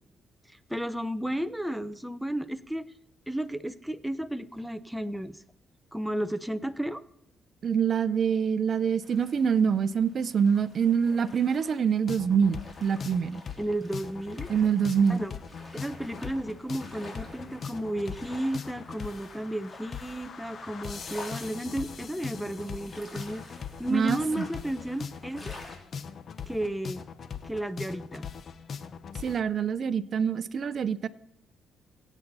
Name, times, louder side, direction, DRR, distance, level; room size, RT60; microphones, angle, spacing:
voice 1, 0.5-2.9 3.3-5.4 5.9-7.0 13.6-14.5 15.1-15.3 15.7-23.4 23.8-25.6 26.5-27.0 27.4-28.3, right 1 dB, ahead, 11 dB, 0.7 m, -33 dB
voice 2, 7.6-13.4 14.5-15.2 23.9-24.4 29.2-31.1, right 7 dB, 55° right, 15 dB, 0.6 m, -25 dB
sound 1, 9.0-25.8, left 2 dB, 25° left, 3.7 m, -49 dB
sound 2, 12.1-29.4, left 6 dB, 50° left, 1.0 m, -40 dB
23.5 x 8.2 x 4.1 m, 0.79 s
cardioid pair, 90°, 0 cm